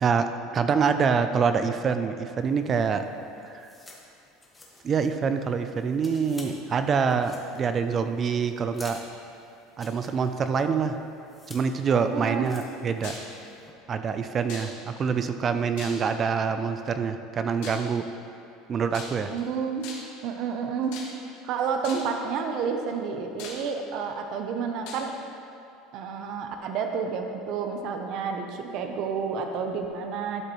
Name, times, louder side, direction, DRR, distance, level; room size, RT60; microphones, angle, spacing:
voice 1, 0.0-3.1 3.4-3.7 4.8-9.0 9.8-11.0 11.5-13.2 13.9-18.0 18.7-19.3, right 6 dB, 30° right, 9 dB, 0.4 m, -26 dB
sound 1, 2.4-13.7, left 2 dB, 10° left, 1.1 m, -51 dB
voice 2, 12.1-12.5 19.3-19.9 20.2-20.9 21.4-25.1 25.9-30.4, right 6 dB, 50° right, 4 dB, 0.8 m, -30 dB
sound 2, 13.0-13.3 14.5-15.0 15.8-16.3 17.6-17.9 18.9-19.4 19.8-20.2 20.9-21.4 21.8-22.2 22.9-23.0 23.4-24.1 24.9-25.1, left 4 dB, 70° left, 1.4 m, -40 dB
11.5 x 6.5 x 3.1 m, 2.6 s
supercardioid pair, 140°, 0 cm